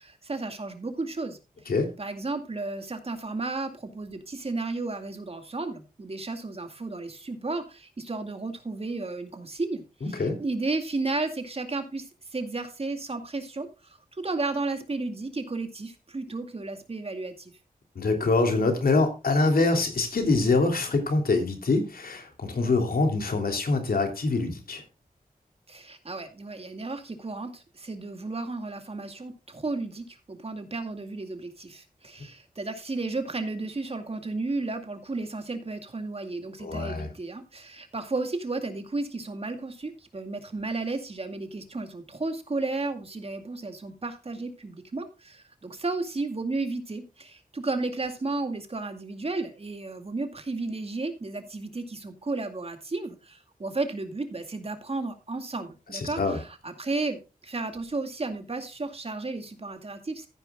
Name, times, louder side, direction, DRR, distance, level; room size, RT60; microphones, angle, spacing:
voice 1, 0.0-1.4 2.0-9.8 10.2-17.5 25.7-60.3, right 3 dB, 40° right, 7 dB, 2.2 m, -33 dB
voice 2, 10.0-10.4 17.9-24.8 36.6-37.1 55.9-56.4, left 3 dB, 80° left, 5 dB, 3.0 m, -25 dB
14.5 x 10.0 x 2.3 m, 0.29 s
wide cardioid pair, 85°, 15 cm